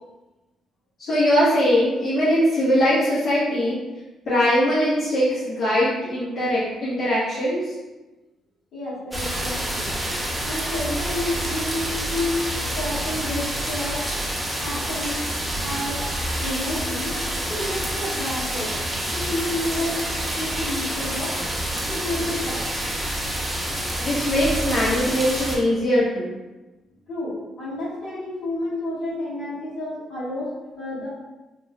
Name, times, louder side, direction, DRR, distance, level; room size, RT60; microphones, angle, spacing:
voice 1, 1.0-3.8 4.3-7.7 24.0-26.4, equal, 60° left, -12 dB, 1.0 m, -21 dB
voice 2, 8.7-10.0 10.4-12.4 12.7-14.1 14.6-15.2 15.6-16.0 16.4-17.2 17.5-18.9 19.2-20.0 20.4-21.4 21.9-22.7 27.1-31.1, left 1 dB, 80° left, -9 dB, 1.5 m, -30 dB
sound 1, 9.1-25.6, right 1 dB, 10° right, 0.7 m, -28 dB
3.0 x 2.5 x 2.2 m, 1.1 s
cardioid pair, 90°, 0 cm